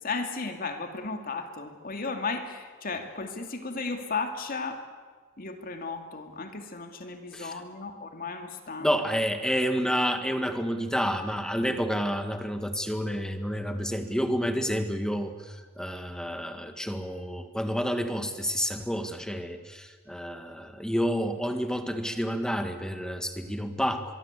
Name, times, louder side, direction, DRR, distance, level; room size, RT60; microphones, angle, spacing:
voice 1, 0.0-4.8 5.4-9.0, left 4 dB, 45° left, 6 dB, 2.6 m, -35 dB
voice 2, 8.8-24.1, equal, 5° left, 7 dB, 1.8 m, -29 dB
23.5 x 23.5 x 8.4 m, 1.4 s
head